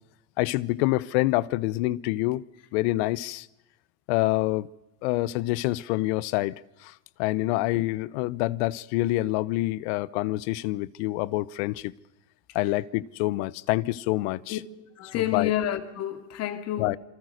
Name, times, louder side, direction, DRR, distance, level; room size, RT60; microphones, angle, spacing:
voice 1, 0.4-2.4 2.7-3.5 4.1-4.7 5.0-6.9 7.2-11.9 12.5-14.6 15.1-15.5 16.8-17.0, left 18 dB, 75° left, 1.0 m, -26 dB
voice 2, 15.0-16.9, left 12 dB, 50° left, 2.6 m, -29 dB
27.5 x 24.0 x 6.6 m
supercardioid pair, 125°, 33 cm